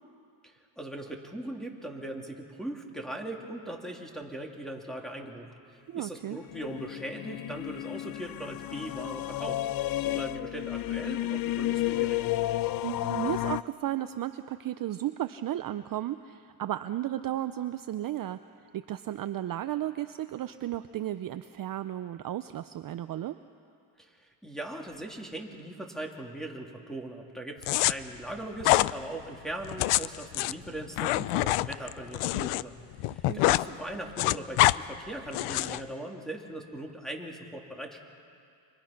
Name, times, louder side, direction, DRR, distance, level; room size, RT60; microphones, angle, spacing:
voice 1, 0.4-12.2 24.0-32.8 33.1-38.0, right 1 dB, ahead, 1 dB, 2.8 m, -40 dB
voice 2, 5.9-6.4 12.8-18.4 18.7-23.4 32.3-32.5 33.3-33.4, right 13 dB, 45° right, 11 dB, 0.6 m, -34 dB
sound 1, 6.4-13.6, left 15 dB, 45° left, 0.5 m, -32 dB
sound 2, 27.6-27.9 28.6-28.9 29.6-32.6 32.9-33.7 33.9-34.8 35.3-35.8, left 18 dB, 85° left, 0.6 m, -25 dB
29.0 x 25.5 x 5.9 m, 2.4 s
cardioid pair, 120°, 49 cm